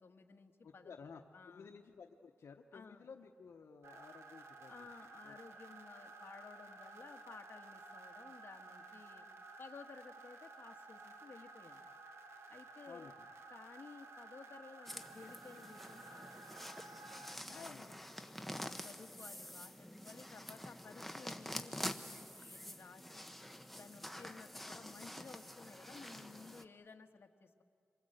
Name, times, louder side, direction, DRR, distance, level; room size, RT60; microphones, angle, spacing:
voice 1, 0.0-1.7 2.7-3.0 4.7-9.3 9.6-11.8 12.5-13.1 13.5-18.4 18.8-23.3 23.7-27.6, left 5 dB, 60° left, 4 dB, 1.5 m, -56 dB
voice 2, 0.6-4.9 5.2-5.4 12.9-13.2 17.5-17.9, left 5 dB, 80° left, 4 dB, 1.0 m, -55 dB
sound 1, 3.8-17.4, right 3 dB, 85° right, 1.8 m, -54 dB
sound 2, 14.9-26.6, left 1 dB, 5° left, 1.1 m, -47 dB
28.0 x 23.5 x 8.0 m, 2.4 s
wide cardioid pair, 85°, 5 cm